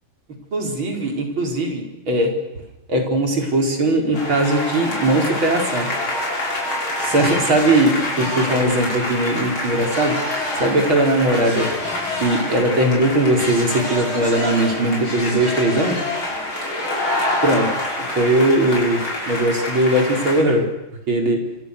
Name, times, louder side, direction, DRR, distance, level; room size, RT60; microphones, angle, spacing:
voice 1, 0.5-2.3 2.9-5.9 7.0-10.2 10.6-11.7 12.2-16.0 17.4-17.7 18.2-20.7 21.1-21.4, right 1 dB, 75° right, 2 dB, 5.3 m, -19 dB
sound 1, 4.1-20.4, left 1 dB, 85° left, 7.3 m, -26 dB
30.0 x 26.5 x 6.9 m, 0.97 s
omnidirectional pair, 2.2 m